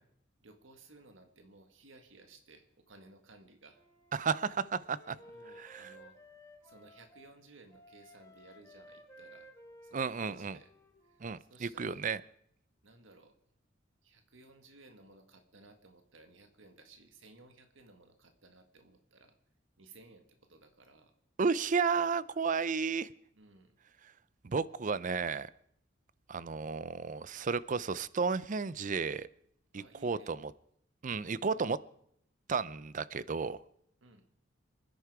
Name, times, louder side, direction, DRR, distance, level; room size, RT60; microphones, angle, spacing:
voice 1, 0.4-3.8 5.1-6.2 6.6-9.5 9.8-10.7 11.0-12.0 12.8-13.4 14.0-19.4 19.8-21.2 23.3-23.8 29.7-30.3 34.0-34.3, right 3 dB, 75° right, 7 dB, 1.7 m, -58 dB
Wind instrument woodwind instrument, 3.7-7.4 7.7-11.3, equal, 15° left, 2.1 m, -56 dB
voice 2, 4.1-5.2 5.6-5.9 9.9-10.6 11.2-12.2 21.4-23.1 24.4-25.5 26.3-29.3 29.7-30.5 31.0-31.8 32.5-33.6, right 5 dB, 40° right, 18 dB, 0.5 m, -33 dB
25.5 x 10.5 x 4.8 m, 0.71 s
head